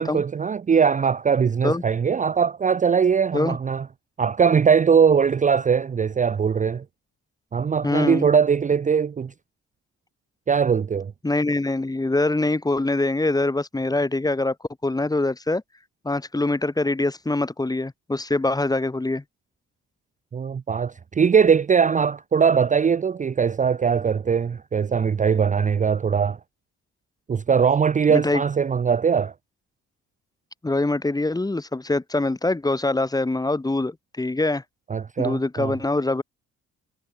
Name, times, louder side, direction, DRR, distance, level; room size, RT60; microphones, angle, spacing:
voice 1, 0.0-3.8 4.2-6.8 7.5-9.3 10.5-11.1 20.3-26.4 27.3-29.3 34.9-35.7, right 6 dB, 25° right, 0.5 m, -21 dB
voice 2, 7.8-8.3 11.2-14.5 14.8-15.6 16.0-19.2 28.1-28.4 30.6-34.6 35.2-36.2, left 2 dB, 10° left, 1.2 m, -24 dB
cardioid pair, 90°, 30 cm